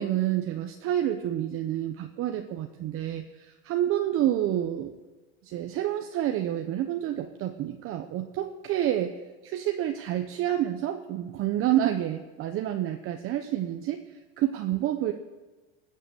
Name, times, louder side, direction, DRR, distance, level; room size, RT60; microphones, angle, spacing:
voice 1, 0.0-4.9 5.4-9.2 9.4-14.0 14.4-15.1, right 12 dB, 45° right, 6 dB, 1.0 m, -28 dB
18.5 x 8.0 x 7.8 m, 1.2 s
supercardioid pair, 130°, 31 cm